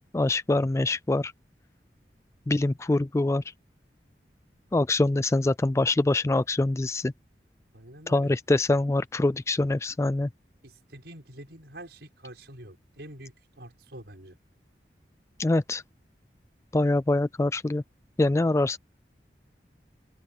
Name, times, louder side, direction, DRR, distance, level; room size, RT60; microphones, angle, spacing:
voice 1, 0.1-1.3 2.5-3.4 4.7-7.1 8.1-10.3 15.4-15.8 16.7-17.8 18.2-18.8, left 2 dB, 15° left, 0.3 m, -24 dB
voice 2, 7.7-8.3 10.6-14.4, right 1 dB, 75° right, 5.5 m, -46 dB
open air
head